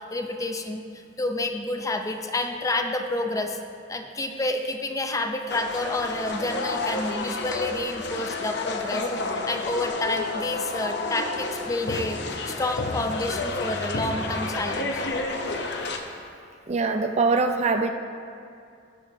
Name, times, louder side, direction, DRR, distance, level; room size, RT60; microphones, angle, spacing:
voice 1, 0.1-3.6 3.9-9.0 9.5-12.2 12.5-15.0, left 2 dB, 15° left, 4 dB, 0.5 m, -29 dB
sound 1, 5.5-16.0, left 3 dB, 60° left, 0.7 m, -30 dB
voice 2, 16.7-17.9, right 4 dB, 35° right, 6 dB, 0.4 m, -23 dB
17.0 x 7.0 x 2.7 m, 2.4 s
head